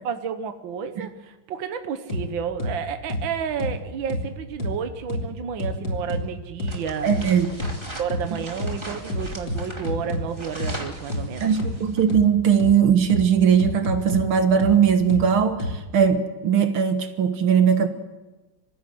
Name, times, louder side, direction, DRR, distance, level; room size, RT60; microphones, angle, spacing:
voice 1, 0.1-7.1 8.0-11.5, right 7 dB, 70° right, 8 dB, 1.8 m, -31 dB
sound 1, 2.1-2.2 2.6-2.7 3.1-3.2 3.6-3.7 4.1-4.2 4.6-4.7 5.1-5.2 5.6-6.2 6.6-6.7 7.1-7.2 7.6-7.7 8.1-8.2 8.6-8.7 9.1-10.2 10.6-10.7 11.1-11.2 11.6-11.7 12.1-12.2 12.6-12.7 13.1-13.2 13.6-14.2 14.6-14.7 15.1-15.2 15.6-15.7, left 1 dB, 65° left, 3.8 m, -27 dB
sound 2, 6.6-12.1, right 1 dB, 15° right, 2.6 m, -39 dB
voice 2, 7.0-7.5 11.4-17.9, right 7 dB, 85° right, 7 dB, 2.4 m, -19 dB
26.0 x 15.0 x 7.8 m, 1.1 s
omnidirectional pair, 2.2 m